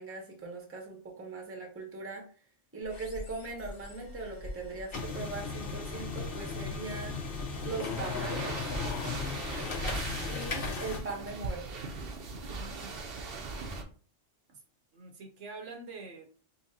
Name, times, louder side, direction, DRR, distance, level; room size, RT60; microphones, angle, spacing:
voice 1, 0.0-2.2 2.7-7.1 7.6-8.5 10.2-11.8, right 3 dB, 15° right, 1 dB, 0.8 m, -40 dB
sound 1, 2.8-11.0, left 4 dB, 50° left, 1.0 m, -37 dB
sound 2, 8.0-13.8, right 3 dB, 55° right, 0.9 m, -39 dB
voice 2, 9.1-9.8 12.4-13.0 14.5-14.6 14.9-16.3, right 3 dB, 75° right, 3 dB, 1.2 m, -47 dB
5.5 x 2.2 x 2.8 m, 0.43 s
omnidirectional pair, 1.3 m